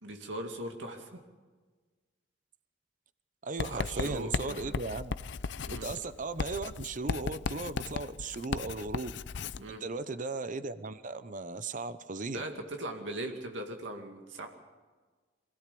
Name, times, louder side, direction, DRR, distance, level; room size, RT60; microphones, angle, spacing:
voice 1, 0.0-1.2 3.7-4.8 5.7-5.9 9.6-9.8 12.3-14.5, right 1 dB, 85° right, 3 dB, 2.3 m, -40 dB
voice 2, 3.4-5.1 5.7-9.2 9.7-12.4, right 3 dB, 45° right, 13 dB, 0.8 m, -37 dB
Writing, 3.6-9.6, left 5 dB, 70° left, 0.5 m, -36 dB
24.0 x 16.5 x 6.9 m, 1.4 s
head